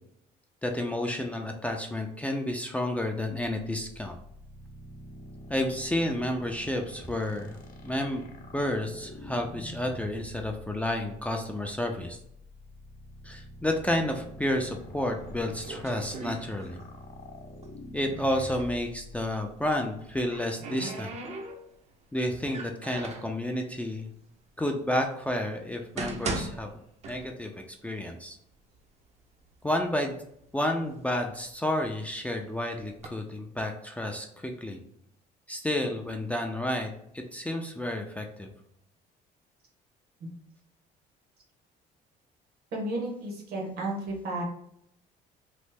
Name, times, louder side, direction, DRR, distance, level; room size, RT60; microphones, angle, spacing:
voice 1, 0.6-4.2 5.5-7.6 7.8-12.2 13.2-16.8 17.9-21.1 22.1-24.1 24.6-26.7 27.1-28.4 29.6-30.2 30.5-34.8 35.5-38.5, left 1 dB, 10° left, 2 dB, 0.3 m, -31 dB
sound 1, 4.2-20.4, equal, 55° left, 0.7 m, -46 dB
sound 2, 15.1-17.0 17.3-18.7 19.8-21.9 22.4-23.4 24.1-24.2 24.9-25.0 25.6-27.6 27.9-28.0 28.8-28.9 29.2-29.9 30.4-32.1 32.7-33.1, right 2 dB, 40° right, 0.6 m, -39 dB
voice 2, 42.7-44.4, right 1 dB, 65° right, -1 dB, 1.1 m, -33 dB
3.1 x 2.0 x 3.3 m, 0.73 s
cardioid pair, 110°, 17 cm